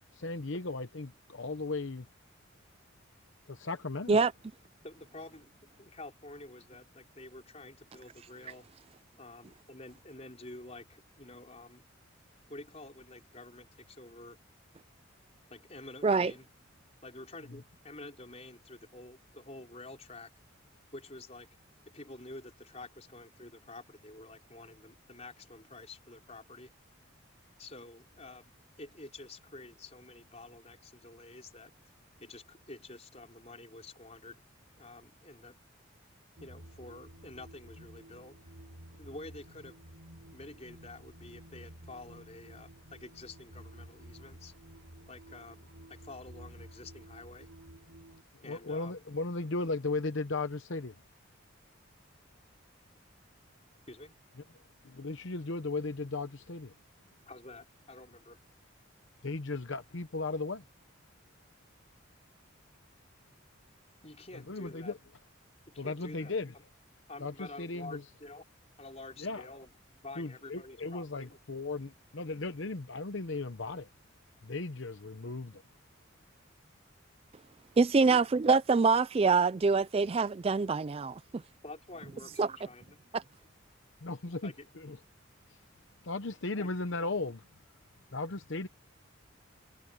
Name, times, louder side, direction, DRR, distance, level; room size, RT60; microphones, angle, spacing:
voice 1, 0.0-2.1 3.5-4.3 17.5-17.6 48.4-50.9 54.3-54.4 54.8-56.7 59.2-60.6 64.3-65.0 65.8-66.5 67.2-68.2 69.2-69.5 70.1-73.9 74.4-75.6 84.0-85.0 85.5-85.6 86.0-87.5 88.1-88.7, left 3 dB, 65° left, 0.9 m, -36 dB
voice 2, 4.8-8.7 9.2-11.8 12.5-14.4 15.5-16.5 17.0-20.3 20.9-21.5 21.8-26.7 27.6-28.5 28.8-31.7 32.2-34.4 34.8-35.6 36.4-38.5 38.9-39.8 40.3-44.5 45.1-47.5 48.4-48.9 53.9-54.1 57.3-58.4 64.0-65.0 65.7-66.4 67.1-68.4 68.8-69.7 70.0-71.4 78.0-78.3 81.6-83.0 84.4-84.7 86.6-86.7, left 2 dB, 30° left, 5.0 m, -49 dB
sound 1, 36.4-48.2, right 1 dB, 85° right, 5.1 m, -52 dB
voice 3, 77.8-81.4 82.4-82.5 83.1-83.2, right 4 dB, 30° right, 0.3 m, -25 dB
head